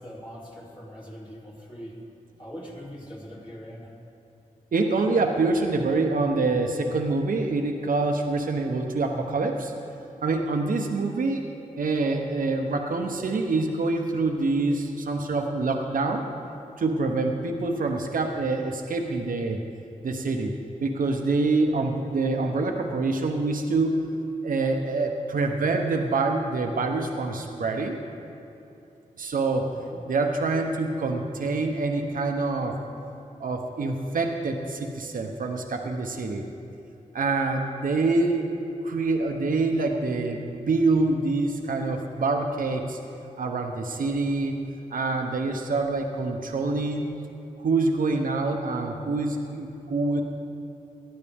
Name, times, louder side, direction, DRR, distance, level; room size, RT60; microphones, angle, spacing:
voice 1, 0.0-2.0 2.4-3.9 29.6-30.0, equal, 35° left, -6 dB, 3.0 m, -42 dB
voice 2, 4.7-9.7 10.2-11.4 11.8-16.3 16.8-19.6 20.0-20.5 20.8-24.0 24.4-28.0 29.2-29.7 30.1-32.8 33.4-36.4 37.1-38.5 38.8-43.0 43.4-44.5 44.9-47.1 47.6-50.2, right 3 dB, 75° right, 3 dB, 1.0 m, -26 dB
18.5 x 12.0 x 3.6 m, 2.8 s
cardioid pair, 65°, 14 cm